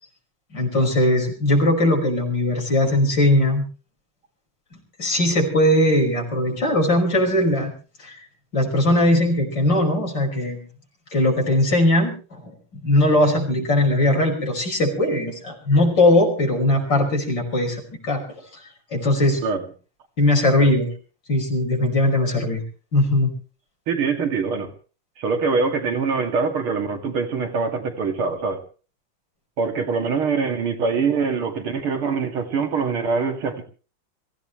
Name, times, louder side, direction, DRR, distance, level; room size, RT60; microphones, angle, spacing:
voice 1, 0.5-3.7 5.0-7.7 8.0-8.2 8.5-10.6 11.1-12.5 12.8-18.2 18.9-19.4 20.2-20.9 21.3-22.6 22.9-23.3, left 1 dB, 55° left, 6.2 m, -19 dB
voice 2, 23.9-24.7 25.2-28.6 29.6-33.6, right 5 dB, 80° right, 3.1 m, -24 dB
25.5 x 16.0 x 3.2 m
omnidirectional pair, 2.3 m